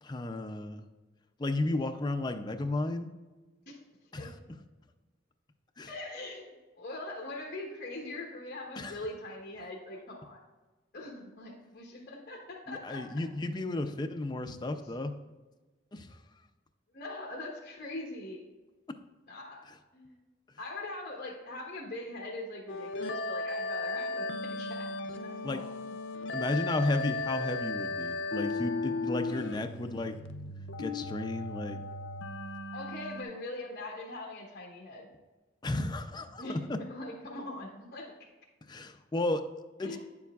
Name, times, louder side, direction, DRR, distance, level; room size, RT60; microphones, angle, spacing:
voice 1, 0.0-0.8 1.4-3.1 4.1-4.3 5.8-5.9 8.8-9.0 12.7-15.1 15.9-16.2 25.4-25.6 26.3-30.2 30.8-31.8 35.6-36.8 38.7-39.5 39.8-40.0, left 2 dB, 20° left, 7 dB, 0.4 m, -33 dB
voice 2, 5.9-10.4 10.9-13.1 16.9-18.4 19.3-19.6 19.9-20.2 20.6-24.9 25.2-25.6 26.4-27.0 32.7-35.1 36.4-38.1 39.8-40.0, left 2 dB, 50° left, -3 dB, 1.1 m, -42 dB
sound 1, 22.7-33.2, left 3 dB, 80° left, 0.6 m, -36 dB
8.9 x 7.0 x 2.4 m, 1.2 s
head